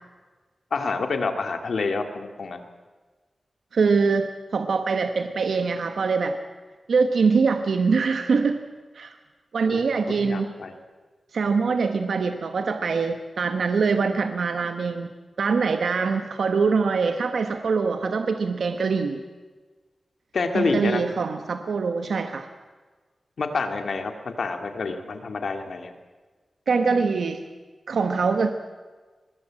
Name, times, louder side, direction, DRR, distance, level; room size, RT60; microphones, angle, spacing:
voice 1, 0.7-2.6 9.6-10.7 20.3-21.0 23.4-25.9, left 4 dB, 70° left, 6 dB, 2.4 m, -28 dB
voice 2, 3.7-6.4 6.9-8.6 8.9-9.2 9.5-10.5 11.3-15.1 15.4-19.2 20.5-22.5 26.7-27.4 27.9-28.5, right 4 dB, 80° right, 7 dB, 1.2 m, -23 dB
24.0 x 21.0 x 7.7 m, 1.4 s
wide cardioid pair, 105°, 0 cm